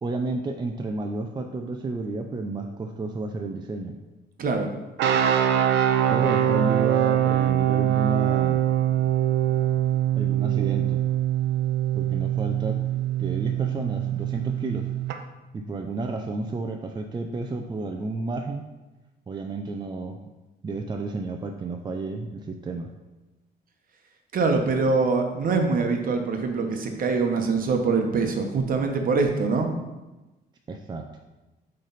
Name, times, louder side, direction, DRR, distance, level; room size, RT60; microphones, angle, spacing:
voice 1, 0.0-4.0 6.1-8.6 10.2-11.0 11.9-12.8 13.2-14.9 15.5-18.6 19.3-20.2 20.6-22.9 30.7-31.1, right 3 dB, 25° right, 3 dB, 0.5 m, -31 dB
voice 2, 4.4-4.7 24.3-29.7, right 4 dB, 50° right, 4 dB, 1.0 m, -24 dB
sound 1, 5.0-15.2, right 11 dB, 80° right, 0.5 m, -23 dB
8.1 x 3.3 x 4.0 m, 1.1 s
cardioid pair, 95°, 18 cm